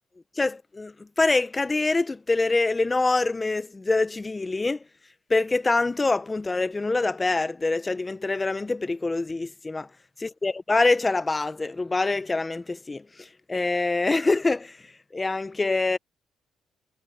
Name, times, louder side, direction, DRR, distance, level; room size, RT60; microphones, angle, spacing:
voice 1, 0.4-4.8 5.3-9.9 10.2-14.8 15.1-16.0, left 3 dB, 20° left, 0.9 m, -25 dB
cardioid pair, 90°, 0 cm